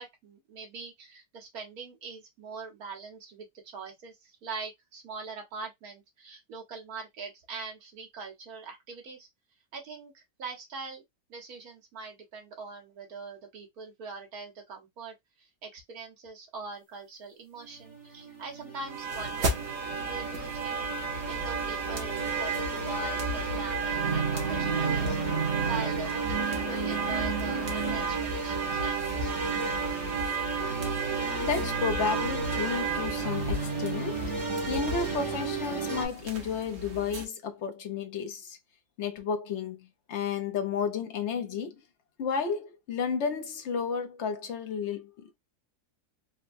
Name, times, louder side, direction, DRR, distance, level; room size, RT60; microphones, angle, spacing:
voice 1, 0.0-9.3 9.7-11.0 11.3-19.6 20.0-20.9 21.3-29.5, right 4 dB, 65° right, 1.5 m, -42 dB
sound 1, 17.6-36.1, right 4 dB, 25° right, 1.1 m, -33 dB
sound 2, 18.9-37.2, right 3 dB, 50° right, 1.1 m, -33 dB
voice 2, 31.4-34.3 34.7-38.6 39.0-41.8 42.2-45.4, left 6 dB, 55° left, 0.9 m, -32 dB
3.9 x 2.2 x 2.6 m
omnidirectional pair, 1.7 m